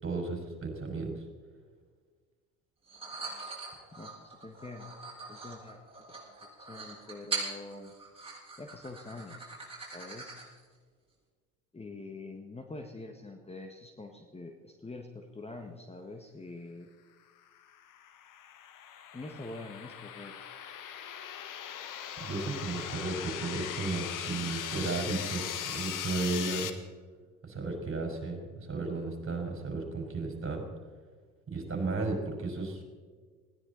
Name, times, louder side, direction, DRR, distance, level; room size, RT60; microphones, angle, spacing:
voice 1, 0.0-1.2 22.2-26.7 27.4-30.6 31.5-32.8, right 3 dB, 30° right, 2 dB, 5.2 m, -34 dB
sound 1, 2.9-10.6, right 4 dB, 15° right, 6.6 m, -41 dB
voice 2, 3.9-4.9 5.3-5.8 6.6-7.9 8.6-9.5 9.8-10.4 11.7-16.9 19.1-20.3, left 2 dB, 15° left, 5 dB, 1.6 m, -45 dB
sound 2, 17.7-26.7, left 9 dB, 45° left, 1.7 m, -39 dB
20.0 x 17.0 x 4.1 m, 1.5 s
hypercardioid pair, 65°, 43 cm